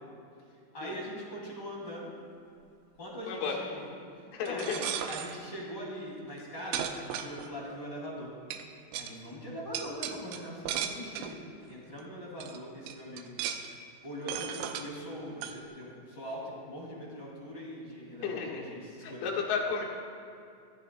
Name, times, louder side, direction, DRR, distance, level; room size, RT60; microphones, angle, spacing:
voice 1, 0.7-2.1 3.0-3.9 4.4-8.3 8.9-13.3 14.0-19.2, equal, 30° left, -5 dB, 2.2 m, -41 dB
voice 2, 3.3-3.6 4.3-4.9 18.2-19.8, left 5 dB, 70° left, -1 dB, 3.6 m, -33 dB
sound 1, 4.5-5.4 6.3-6.4 6.7-7.7 8.5-8.6 8.9-9.1 9.7-11.4 12.0-12.1 12.4-12.6 12.9-13.7 14.3-14.9 15.4-15.6, right 9 dB, 90° right, 3.3 m, -36 dB
25.0 x 14.5 x 2.2 m, 2.5 s
omnidirectional pair, 5.5 m